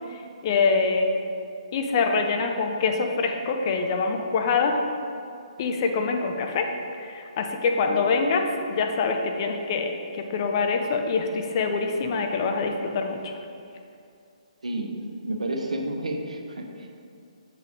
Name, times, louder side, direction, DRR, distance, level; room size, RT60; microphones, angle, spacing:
voice 1, 0.1-1.1 1.7-4.8 5.6-6.7 7.0-13.4, left 4 dB, 40° left, 4 dB, 0.7 m, -25 dB
voice 2, 14.6-15.0 15.2-16.9, right 1 dB, 75° right, 2 dB, 1.0 m, -30 dB
6.8 x 4.9 x 4.7 m, 2.5 s
figure-of-eight pair, 135°, 4 cm